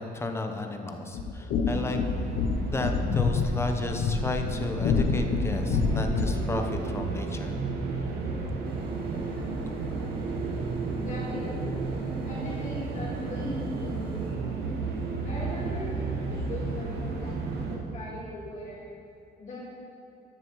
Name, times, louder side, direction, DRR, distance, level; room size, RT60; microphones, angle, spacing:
voice 1, 0.1-2.0 2.7-7.6, left 2 dB, 15° left, 4 dB, 0.8 m, -33 dB
sound 1, 1.1-6.5, left 5 dB, 70° left, 0.7 m, -27 dB
sound 2, 1.7-17.8, right 4 dB, 70° right, 1.3 m, -33 dB
sound 3, 8.6-14.4, right 2 dB, 30° right, 1.1 m, -41 dB
voice 2, 11.0-11.9 12.2-14.6 15.2-17.4 17.7-18.8 19.4-19.6, left 1 dB, 45° left, -7 dB, 1.8 m, -40 dB
13.5 x 7.1 x 3.1 m, 2.7 s
cardioid pair, 110°, 17 cm